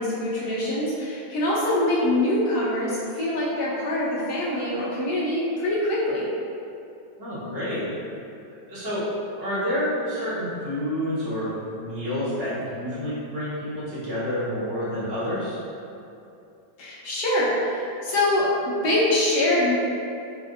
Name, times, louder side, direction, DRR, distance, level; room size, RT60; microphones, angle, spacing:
voice 1, 0.0-6.3 16.8-19.7, left 1 dB, 65° left, -8 dB, 1.2 m, -24 dB
voice 2, 7.2-7.9 8.7-9.1 9.4-15.6, equal, 75° right, -12 dB, 2.0 m, -28 dB
5.0 x 2.5 x 2.5 m, 2.7 s
omnidirectional pair, 1.9 m